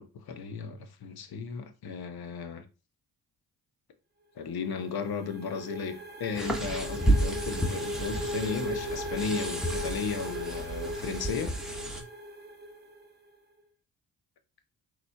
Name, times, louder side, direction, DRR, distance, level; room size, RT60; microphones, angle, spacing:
voice 1, 0.0-2.7 4.4-11.5, left 5 dB, 50° left, 0.9 m, -35 dB
sound 1, 4.4-13.1, equal, 20° right, 0.9 m, -38 dB
sound 2, 6.3-12.0, right 1 dB, ahead, 1.1 m, -31 dB
4.0 x 3.2 x 3.4 m
hypercardioid pair, 45°, 47 cm